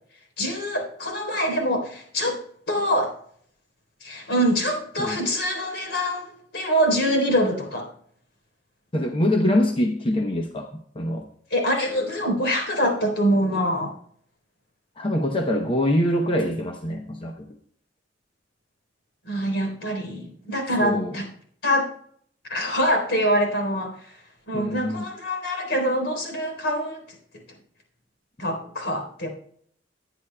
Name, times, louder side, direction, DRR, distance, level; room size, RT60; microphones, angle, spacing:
voice 1, 0.4-2.4 2.7-3.1 4.0-7.9 11.5-13.9 19.3-21.3 21.6-21.9 22.5-24.2 24.5-27.0 28.4-29.3, equal, 70° left, 2 dB, 3.7 m, -24 dB
voice 2, 8.9-11.3 15.0-17.6 20.8-21.2 24.5-25.0, left 1 dB, 30° left, 3 dB, 0.8 m, -24 dB
20.5 x 10.0 x 2.2 m, 0.63 s
head